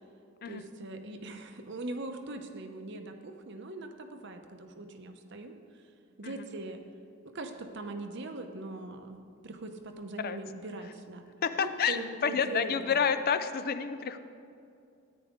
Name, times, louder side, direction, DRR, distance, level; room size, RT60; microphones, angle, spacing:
voice 1, 0.4-5.5 6.2-6.8 7.3-11.3 11.6-13.0, right 2 dB, 60° right, 6 dB, 0.8 m, -41 dB
voice 2, 11.4-14.2, left 6 dB, 50° left, 11 dB, 0.5 m, -29 dB
13.5 x 9.7 x 3.6 m, 2.5 s
head